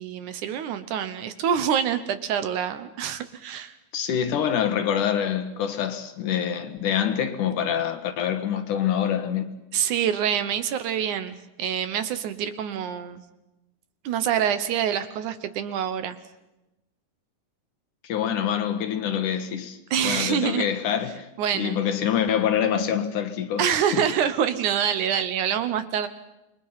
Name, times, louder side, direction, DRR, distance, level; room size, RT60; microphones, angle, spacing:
voice 1, 0.0-3.8 9.7-13.2 14.0-16.2 19.9-20.7 21.4-21.8 23.6-26.1, right 8 dB, 70° right, 2.3 m, -26 dB
voice 2, 3.9-9.6 18.0-19.8 20.0-21.3 21.5-24.0, left 9 dB, 70° left, 2.8 m, -26 dB
28.0 x 22.5 x 5.7 m
omnidirectional pair, 3.9 m